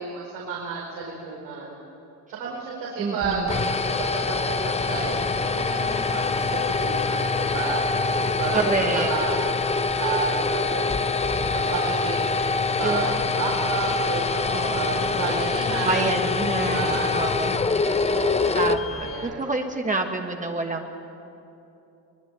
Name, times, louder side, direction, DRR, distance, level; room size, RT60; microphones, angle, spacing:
voice 1, 0.0-1.7 2.3-3.5 3.8-7.8 8.2-8.6 8.9-9.3 10.0-10.8 11.7-12.3 12.8-16.1 16.6-17.3 17.8-18.6 19.0-19.4, right 5 dB, 85° right, -3 dB, 4.8 m, -31 dB
voice 2, 3.0-3.7 8.5-9.1 12.8-13.0 14.5-15.2 15.8-17.8 18.5-21.0, right 3 dB, 20° right, 3 dB, 1.5 m, -28 dB
sound 1, 3.2-19.4, left 4 dB, 15° left, 0.7 m, -25 dB
23.0 x 20.5 x 9.1 m, 2.8 s
cardioid pair, 115°, 38 cm